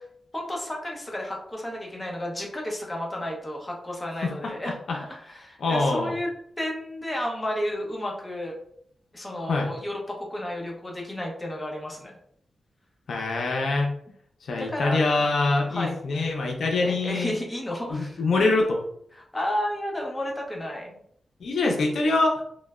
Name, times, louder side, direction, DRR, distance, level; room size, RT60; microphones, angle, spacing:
voice 1, 0.3-6.3 6.6-8.5 9.1-12.1 14.6-15.3 15.7-16.0 16.8-18.5 19.1-21.0, left 1 dB, 20° left, -1 dB, 0.7 m, -32 dB
voice 2, 5.6-6.1 9.5-9.7 13.1-13.9 14.5-17.3 17.9-18.8 21.4-22.4, left 3 dB, 80° left, 1 dB, 0.5 m, -24 dB
3.1 x 2.1 x 2.3 m, 0.67 s
wide cardioid pair, 95°, 0 cm